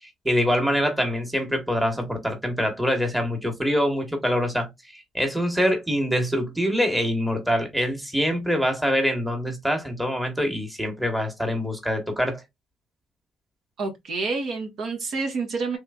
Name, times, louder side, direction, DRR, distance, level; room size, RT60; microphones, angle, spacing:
voice 1, 0.2-12.4, equal, 5° right, 1.2 m, -24 dB
voice 2, 13.8-15.8, right 4 dB, 70° right, 1.3 m, -28 dB
3.4 x 3.0 x 2.4 m
cardioid pair, 90°, 0 cm